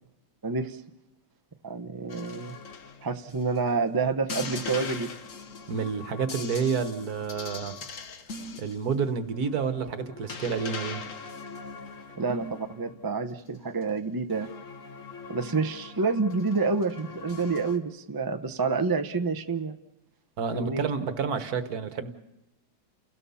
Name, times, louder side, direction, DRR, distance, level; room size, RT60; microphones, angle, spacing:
voice 1, 0.4-0.8 1.6-2.6 3.0-5.1 12.1-14.5 15.3-19.8 20.5-20.9, right 4 dB, 30° right, 8 dB, 0.4 m, -28 dB
sound 1, 2.1-3.8 4.3-13.1 13.4-13.8 14.3-17.8, left 4 dB, 50° left, 1.4 m, -41 dB
voice 2, 5.7-7.8 8.6-11.0 20.4-22.1, right 5 dB, 60° right, 10 dB, 1.7 m, -29 dB
29.5 x 17.0 x 7.1 m, 0.93 s
omnidirectional pair, 2.0 m